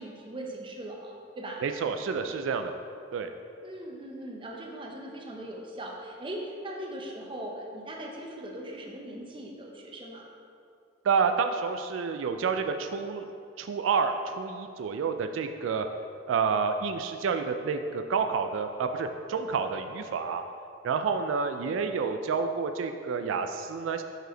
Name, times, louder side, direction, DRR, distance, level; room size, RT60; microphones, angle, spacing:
voice 1, 0.0-1.6 3.6-10.3, right 1 dB, 25° right, 0 dB, 0.7 m, -40 dB
voice 2, 1.6-2.7 3.1-3.3 11.0-13.3 13.6-15.9 16.3-20.4 20.8-24.0, right 5 dB, 85° right, 7 dB, 0.3 m, -29 dB
6.0 x 5.4 x 3.9 m, 2.5 s
head